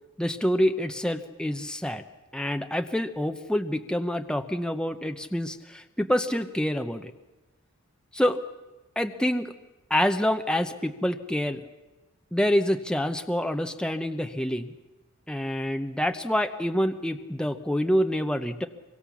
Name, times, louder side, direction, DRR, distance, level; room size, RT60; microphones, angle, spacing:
voice 1, 0.2-2.0 2.3-7.1 8.1-8.4 9.0-9.5 9.9-11.7 12.3-14.7 15.3-18.7, equal, 5° left, 6 dB, 0.8 m, -27 dB
25.0 x 23.5 x 7.2 m, 1.1 s
head